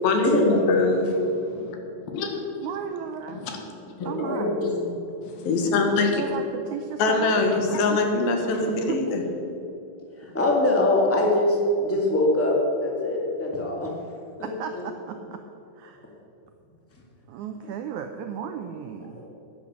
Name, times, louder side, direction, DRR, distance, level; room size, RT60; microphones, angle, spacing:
voice 1, 0.0-1.8 2.1-2.4 3.3-3.6 5.2-6.2 7.0-9.2, left 3 dB, 80° left, 4 dB, 3.2 m, -23 dB
voice 2, 2.6-3.4 4.0-4.6 6.0-7.4 7.7-8.0 8.7-9.2 14.4-15.4 15.8-16.1 17.3-19.2, right 8 dB, 85° right, 6 dB, 1.7 m, -34 dB
voice 3, 4.0-5.0 10.2-13.9 14.4-14.8, left 1 dB, 5° left, -2 dB, 1.1 m, -23 dB
10.0 x 10.0 x 7.4 m, 2.8 s
omnidirectional pair, 4.2 m